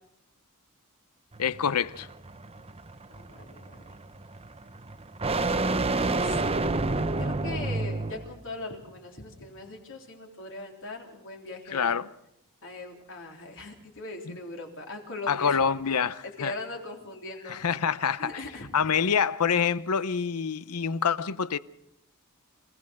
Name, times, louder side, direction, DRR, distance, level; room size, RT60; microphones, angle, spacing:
sound 1, 1.3-8.4, right 2 dB, 25° right, 0.9 m, -30 dB
voice 1, 1.4-2.1 11.7-12.1 14.3-14.4 15.3-16.5 17.5-18.4 18.7-21.6, left 6 dB, 85° left, 0.7 m, -26 dB
voice 2, 3.1-3.9 5.3-6.4 7.2-12.0 12.6-16.0 16.4-17.9 18.2-18.7, left 2 dB, 60° left, 3.6 m, -40 dB
27.0 x 16.0 x 6.4 m
head